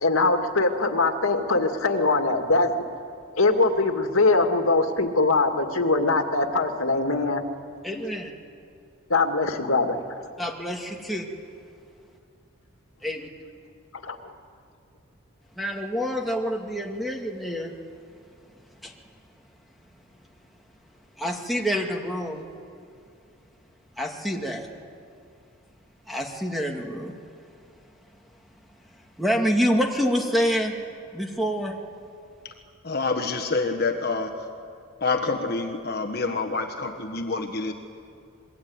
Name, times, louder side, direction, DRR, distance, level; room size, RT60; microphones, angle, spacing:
voice 1, 0.0-2.7 3.4-7.4 9.1-10.0 14.0-14.3, left 3 dB, 85° left, 6 dB, 2.0 m, -22 dB
voice 2, 7.8-8.3 10.4-11.3 13.0-13.3 15.5-17.7 18.8-18.9 21.2-22.5 24.0-24.7 26.1-27.2 29.2-30.7 31.1-31.8, equal, ahead, 1 dB, 2.1 m, -27 dB
voice 3, 32.8-34.4 35.0-37.7, left 3 dB, 50° left, 4 dB, 1.5 m, -27 dB
26.5 x 22.0 x 9.6 m, 2.4 s
head